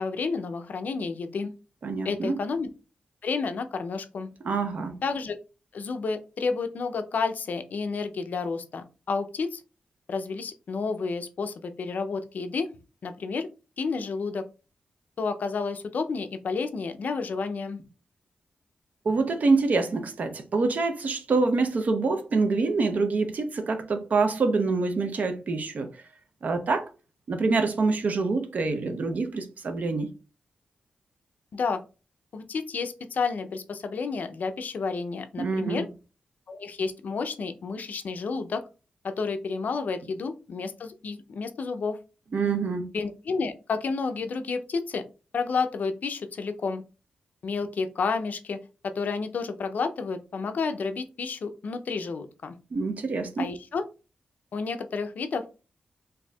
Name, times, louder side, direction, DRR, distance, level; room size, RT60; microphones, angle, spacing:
voice 1, 0.0-1.5 2.0-2.7 3.2-4.3 5.0-5.4 5.7-9.6 10.1-12.7 13.0-13.5 13.8-14.5 15.2-17.8 31.5-31.8 32.3-35.9 36.5-38.6 39.0-42.0 42.9-45.0 45.3-46.8 47.4-52.5 53.4-53.8 54.5-55.6, left 4 dB, 65° left, 0.4 m, -30 dB
voice 2, 1.8-2.4 4.4-5.0 19.0-25.9 26.4-26.9 27.3-30.1 35.4-35.8 42.3-42.9 52.7-53.5, right 3 dB, 60° right, 0.6 m, -26 dB
4.2 x 2.6 x 2.2 m
cardioid pair, 90°, 3 cm